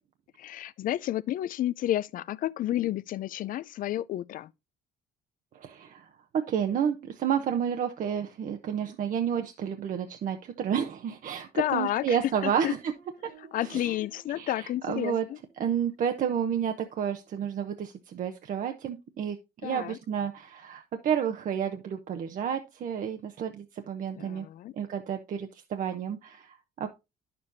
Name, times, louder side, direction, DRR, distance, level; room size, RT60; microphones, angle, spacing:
voice 1, 0.4-4.5 11.6-12.2 12.4-12.7 13.4-15.4 19.6-20.0 24.2-24.7, left 13 dB, 55° left, 0.4 m, -31 dB
voice 2, 5.5-6.1 6.3-12.9 13.6-13.9 14.4-15.3 15.6-19.4 19.6-24.5 24.7-26.9, right 8 dB, 50° right, 0.7 m, -30 dB
Guitar, 12.9-17.6, right 2 dB, 85° right, 3.8 m, -59 dB
9.7 x 6.8 x 2.6 m
cardioid pair, 110°, 17 cm